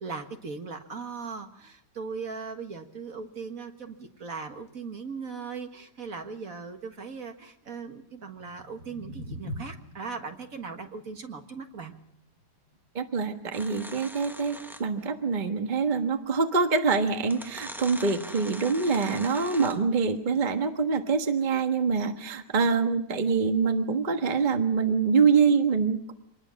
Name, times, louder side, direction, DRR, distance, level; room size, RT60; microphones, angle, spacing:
voice 1, 0.0-11.9, right 5 dB, 55° right, 5 dB, 2.0 m, -39 dB
sound 1, 8.2-14.4, left 1 dB, 85° right, 4.0 m, -45 dB
voice 2, 12.9-26.1, right 5 dB, 30° right, 6 dB, 1.4 m, -25 dB
sound 2, 13.5-15.0 16.3-16.4 17.2-20.0, equal, ahead, 0.7 m, -42 dB
25.5 x 20.0 x 6.4 m, 0.74 s
omnidirectional pair, 1.8 m